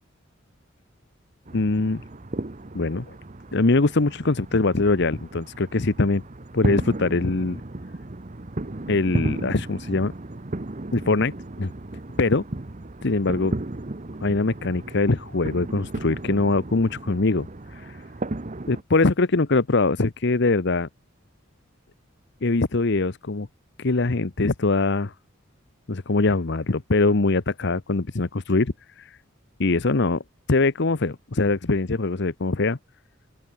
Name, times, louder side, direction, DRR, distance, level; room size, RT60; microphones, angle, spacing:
voice 1, 1.5-2.0 2.7-3.1 3.5-6.2 6.5-7.6 8.9-10.1 10.9-11.3 11.6-11.7 12.2-12.4 13.0-13.5 14.2-18.0 18.7-20.9 22.4-23.5 23.8-25.1 25.9-29.2 29.6-30.2 30.5-32.8, left 3 dB, 60° left, 1.0 m, -22 dB
sound 1, 1.5-18.8, right 2 dB, 40° right, 1.0 m, -34 dB
open air
head